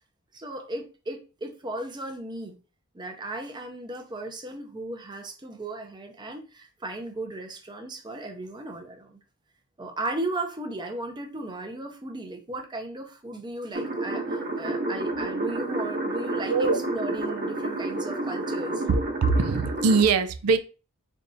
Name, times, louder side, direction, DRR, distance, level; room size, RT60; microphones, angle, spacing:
voice 1, 0.3-2.6 2.9-9.2 9.8-18.9, right 2 dB, 20° right, 0.5 m, -36 dB
sound 1, 13.7-20.0, right 2 dB, 40° right, 1.1 m, -30 dB
voice 2, 16.5-16.8 18.9-20.6, right 4 dB, 90° right, 0.5 m, -22 dB
3.9 x 3.4 x 2.7 m
head